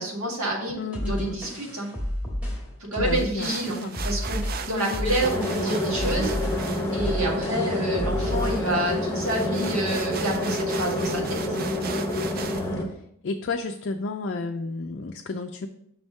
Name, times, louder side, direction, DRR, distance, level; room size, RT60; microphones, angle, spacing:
voice 1, 0.0-0.8 1.0-1.9 2.8-6.4 6.9-11.6, right 1 dB, 80° right, -2 dB, 1.9 m, -28 dB
voice 2, 0.8-1.4 3.0-4.0 4.7-5.2 12.8-15.7, left 3 dB, 55° left, 3 dB, 0.4 m, -32 dB
sound 1, 0.9-8.7, equal, 5° right, 1.6 m, -31 dB
sound 2, 3.1-12.7, right 6 dB, 45° right, 0.4 m, -39 dB
sound 3, 5.2-12.8, left 1 dB, 10° left, 1.0 m, -28 dB
6.0 x 3.6 x 5.2 m, 0.73 s
head